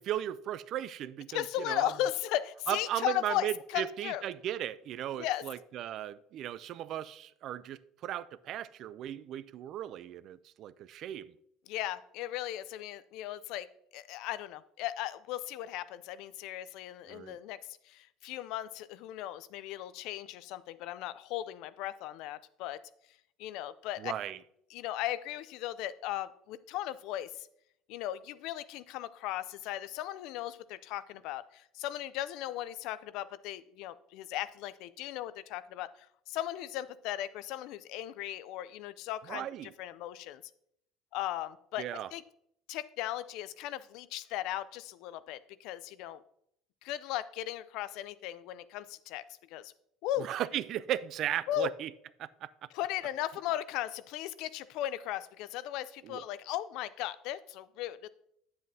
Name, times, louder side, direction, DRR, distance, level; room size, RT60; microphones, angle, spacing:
voice 1, 0.0-1.9 2.7-11.3 17.1-17.4 24.0-24.4 39.3-39.7 41.8-42.1 50.2-51.9 52.2-52.5 56.0-56.2, right 11 dB, 50° right, 0.3 m, -36 dB
voice 2, 1.3-4.2 5.2-5.4 11.7-13.7 13.9-22.8 23.4-24.1 24.7-27.5 27.9-40.4 41.1-42.2 42.7-46.2 46.8-49.2 49.5-49.7 50.0-50.3 51.5-51.7 52.7-58.1, left 13 dB, 70° left, 0.4 m, -37 dB
9.2 x 7.6 x 2.7 m
cardioid pair, 140°, 0 cm